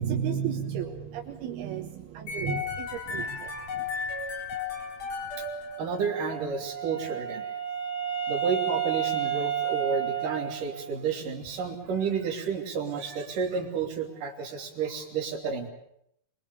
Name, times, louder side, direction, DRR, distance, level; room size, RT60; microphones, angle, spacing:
voice 1, 0.0-3.9, right 8 dB, 80° right, 3 dB, 3.3 m, -33 dB
sound 1, 2.3-6.4, left 4 dB, 55° left, 5.4 m, -34 dB
voice 2, 5.8-7.5 8.3-15.7, right 5 dB, 60° right, 1 dB, 4.4 m, -31 dB
Wind instrument woodwind instrument, 6.3-11.1, right 9 dB, 15° left, 4.8 m, -31 dB
25.0 x 22.5 x 7.0 m, 0.75 s
omnidirectional pair, 4.4 m